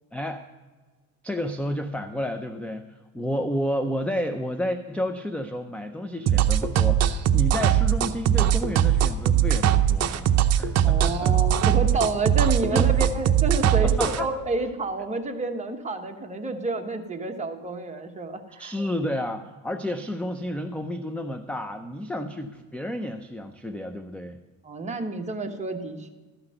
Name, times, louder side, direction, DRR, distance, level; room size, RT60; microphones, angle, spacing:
voice 1, 0.1-0.4 1.2-11.6 12.7-12.9 13.8-14.4 18.6-24.4, equal, 5° left, 8 dB, 0.5 m, -31 dB
sound 1, 6.3-14.2, right 10 dB, 50° right, 0.7 m, -20 dB
voice 2, 10.8-18.7 24.6-26.1, right 3 dB, 20° right, 3 dB, 1.2 m, -29 dB
13.5 x 5.8 x 7.7 m, 1.3 s
cardioid pair, 125°, 34 cm